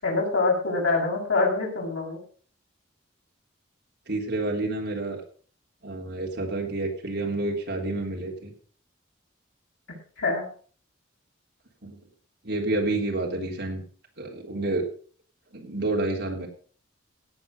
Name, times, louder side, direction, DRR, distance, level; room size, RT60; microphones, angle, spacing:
voice 1, 0.0-2.2 10.2-10.4, left 3 dB, 85° left, -1 dB, 6.9 m, -25 dB
voice 2, 4.1-5.2 5.8-8.5 11.8-12.0 12.4-13.8 14.2-14.9 15.5-16.5, right 2 dB, 55° right, 0 dB, 3.6 m, -29 dB
17.0 x 7.7 x 5.5 m, 0.43 s
head